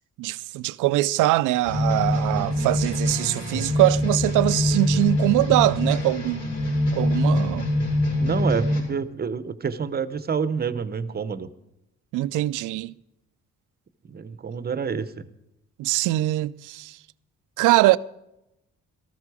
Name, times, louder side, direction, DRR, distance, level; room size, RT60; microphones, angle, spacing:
voice 1, 0.2-6.4 6.9-7.7 12.1-12.9 15.8-16.9 17.6-18.0, right 17 dB, 85° right, 0.5 m, -22 dB
sound 1, 1.6-8.8, left 1 dB, 55° left, 5.6 m, -24 dB
voice 2, 8.2-11.5 14.1-15.3, right 6 dB, 30° right, 0.8 m, -28 dB
13.5 x 13.0 x 4.8 m
cardioid pair, 90°, 30 cm